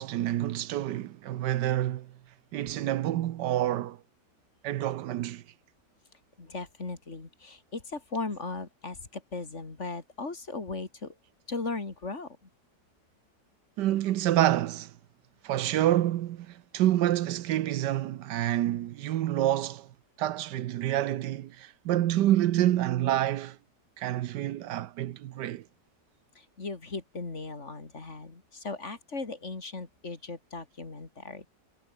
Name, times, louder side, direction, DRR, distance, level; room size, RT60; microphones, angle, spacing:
voice 1, 0.0-2.1 2.5-4.0 4.6-5.4 13.8-14.9 15.4-19.9 20.2-23.6 24.0-25.6, right 13 dB, 80° right, 1.3 m, -28 dB
voice 2, 6.4-11.2 11.5-12.4 26.3-31.5, left 3 dB, 40° left, 3.0 m, -37 dB
omnidirectional pair, 1.8 m